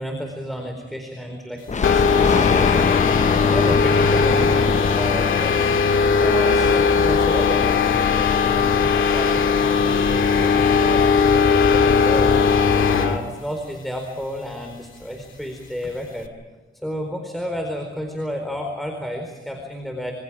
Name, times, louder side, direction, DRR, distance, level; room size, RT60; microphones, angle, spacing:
voice 1, 0.0-2.8 3.5-5.8 6.2-12.3 12.9-16.3 16.8-20.1, equal, ahead, 3 dB, 4.3 m, -31 dB
Thunder, 1.7-7.0, left 5 dB, 35° left, 0.8 m, -25 dB
sound 1, 1.8-13.2, left 5 dB, 80° left, 2.2 m, -18 dB
27.5 x 27.0 x 5.0 m, 1.3 s
wide cardioid pair, 105°, 20 cm